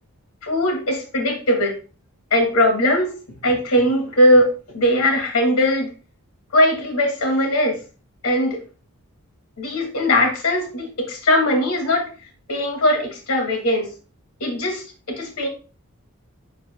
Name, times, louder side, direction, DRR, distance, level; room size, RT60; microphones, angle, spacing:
voice 1, 0.4-1.8 2.3-5.9 6.5-7.8 8.2-8.6 9.6-12.1 12.5-13.9 14.4-14.8 15.2-15.5, left 1 dB, 75° left, 2 dB, 2.4 m, -19 dB
10.0 x 4.6 x 2.3 m, 0.35 s
head